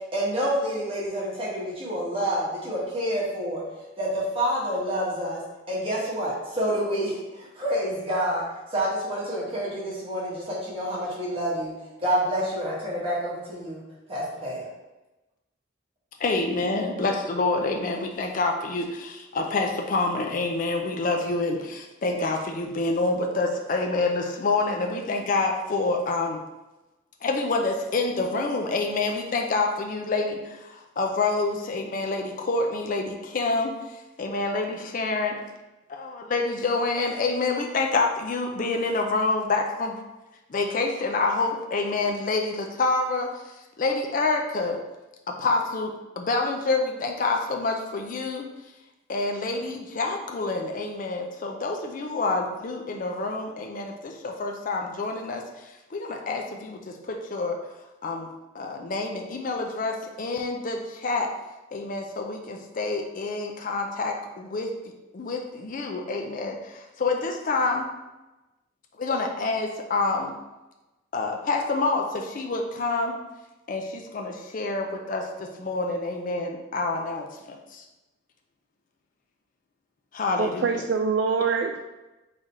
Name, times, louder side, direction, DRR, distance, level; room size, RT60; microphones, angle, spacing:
voice 1, 0.1-3.6 4.0-5.4 5.7-8.4 8.7-11.7 12.0-13.8 14.1-14.6, equal, 30° right, -7 dB, 1.3 m, -28 dB
voice 2, 16.2-26.4 27.2-35.4 35.9-40.0 40.5-44.8 45.3-48.5 49.1-57.6 58.0-58.3 58.5-61.3 61.7-64.7 65.1-67.9 69.0-70.3 71.1-73.1 73.7-77.8 80.1-80.8, left 3 dB, 45° left, 2 dB, 0.4 m, -27 dB
voice 3, 80.4-81.8, right 5 dB, 60° right, 3 dB, 0.3 m, -24 dB
3.7 x 3.3 x 4.1 m, 1.0 s
head